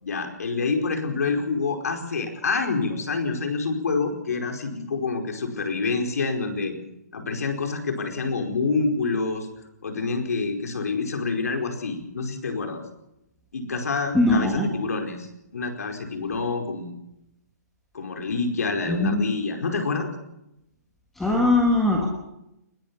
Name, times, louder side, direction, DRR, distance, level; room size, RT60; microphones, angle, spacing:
voice 1, 0.0-6.8 7.1-9.5 9.8-12.8 13.5-15.3 15.5-16.9 17.9-20.1, left 4 dB, 65° left, 4 dB, 4.8 m, -27 dB
voice 2, 14.1-14.7 18.9-19.2 21.2-22.1, left 2 dB, ahead, 0 dB, 1.5 m, -20 dB
20.5 x 18.0 x 7.0 m, 0.85 s
hypercardioid pair, 180°, 9 cm